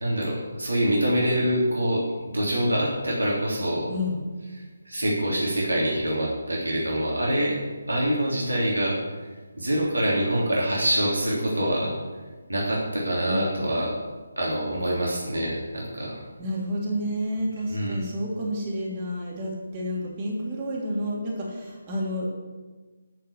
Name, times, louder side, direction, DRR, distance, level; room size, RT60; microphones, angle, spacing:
voice 1, 0.0-3.9 4.8-7.6 7.9-9.0 9.6-11.9 12.5-13.9 14.4-16.2 17.7-18.0, equal, 75° right, -4 dB, 3.3 m, -25 dB
voice 2, 16.4-22.3, equal, 25° right, -3 dB, 3.1 m, -30 dB
13.0 x 5.7 x 7.3 m, 1.3 s
figure-of-eight pair, 150°, 0 cm